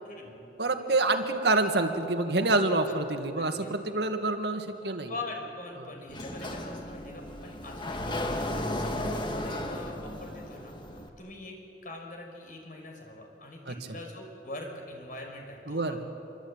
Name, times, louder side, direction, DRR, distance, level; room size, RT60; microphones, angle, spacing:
voice 1, 0.0-0.4 2.9-3.0 3.4-3.8 5.1-16.0, left 2 dB, 50° left, 2 dB, 5.7 m, -43 dB
voice 2, 0.6-5.1 13.7-13.8 15.7-16.0, right 2 dB, 70° right, 6 dB, 2.1 m, -27 dB
Sliding door, 6.1-11.1, left 1 dB, 30° left, 2.1 m, -34 dB
26.0 x 24.5 x 9.0 m, 2.9 s
head